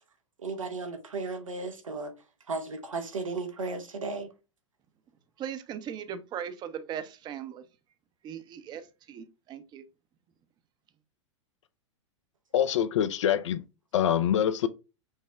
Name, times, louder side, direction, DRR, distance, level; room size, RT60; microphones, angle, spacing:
voice 1, 0.4-2.1 2.5-4.3, right 3 dB, 85° right, 0.8 m, -35 dB
voice 2, 5.4-7.6 8.2-8.8 9.1-9.8, right 8 dB, 25° right, 0.5 m, -38 dB
voice 3, 12.5-13.6 13.9-14.7, left 9 dB, 65° left, 0.5 m, -25 dB
5.4 x 2.1 x 3.4 m
figure-of-eight pair, 100°, 16 cm